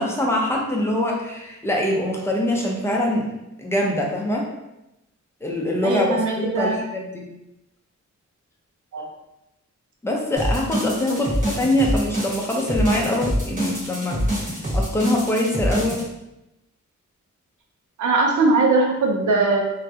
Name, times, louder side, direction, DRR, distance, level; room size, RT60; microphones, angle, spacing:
voice 1, 0.0-3.3 3.6-4.5 5.4-7.3 10.0-16.0, left 1 dB, 10° left, -2 dB, 0.5 m, -24 dB
voice 2, 5.8-6.8 8.9-9.1 11.1-11.2 18.0-19.6, right 3 dB, 75° right, 0 dB, 0.6 m, -20 dB
sound 1, 10.4-16.0, equal, 25° right, 1.1 m, -25 dB
2.3 x 2.1 x 2.7 m, 0.91 s
wide cardioid pair, 90°, 30 cm